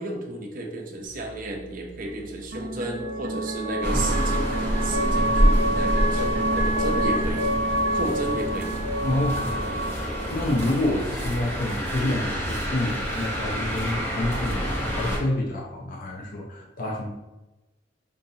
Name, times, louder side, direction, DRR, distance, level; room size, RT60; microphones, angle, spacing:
voice 1, 0.0-7.4 7.9-8.7, right 1 dB, 50° right, 1 dB, 0.7 m, -33 dB
sound 1, 1.0-11.4, right 1 dB, 85° right, 0.8 m, -28 dB
sound 2, 3.8-15.2, equal, 15° left, 0.9 m, -27 dB
voice 2, 9.0-17.1, left 1 dB, 50° left, -2 dB, 0.6 m, -28 dB
5.3 x 2.6 x 2.7 m, 1.0 s
head